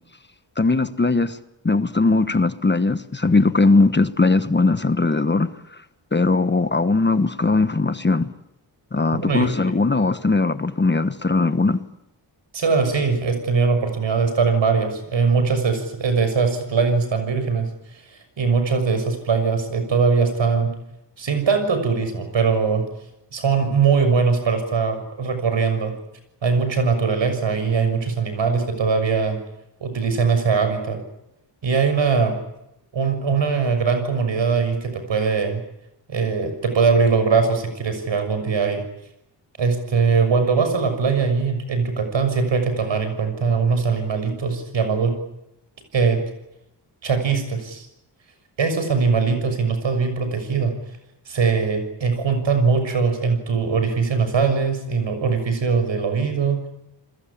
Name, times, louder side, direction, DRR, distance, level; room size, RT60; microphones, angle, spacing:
voice 1, 0.6-1.4 1.6-5.5 6.1-8.3 8.9-11.8, left 3 dB, 25° left, 1.2 m, -19 dB
voice 2, 9.2-9.5 12.5-17.7 18.1-20.7 21.2-22.8 23.3-25.9 26.4-29.4 29.8-31.0 31.6-32.3 32.9-35.6 36.1-38.8 39.6-45.1 45.9-46.2 47.0-47.9 48.6-50.7 51.3-56.7, right 5 dB, 85° right, 6.6 m, -21 dB
29.5 x 21.0 x 8.7 m
wide cardioid pair, 135°, 43 cm